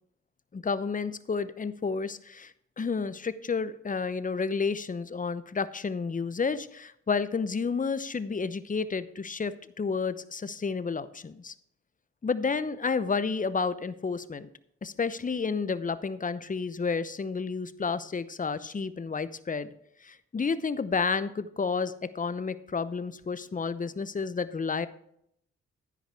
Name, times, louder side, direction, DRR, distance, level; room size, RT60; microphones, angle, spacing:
voice 1, 0.5-11.5 12.2-14.5 14.8-19.7 20.0-24.9, left 5 dB, 25° left, 14 dB, 0.8 m, -31 dB
11.0 x 10.0 x 3.5 m, 0.70 s
hypercardioid pair, 45°, 32 cm